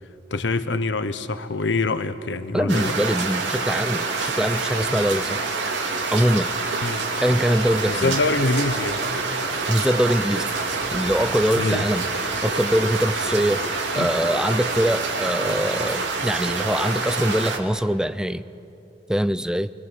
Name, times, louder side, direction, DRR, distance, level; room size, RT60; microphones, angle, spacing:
voice 1, 0.3-2.9 6.8-7.0 7.9-9.0 11.6-11.8 14.0-14.1, left 3 dB, 75° left, 1.0 m, -24 dB
voice 2, 2.5-5.4 6.1-6.5 7.2-8.1 9.7-10.5 10.9-12.1 12.4-18.4 19.1-19.7, equal, 5° right, 0.5 m, -23 dB
sound 1, 2.7-17.6, right 3 dB, 75° right, 2.6 m, -26 dB
29.0 x 24.5 x 7.7 m
head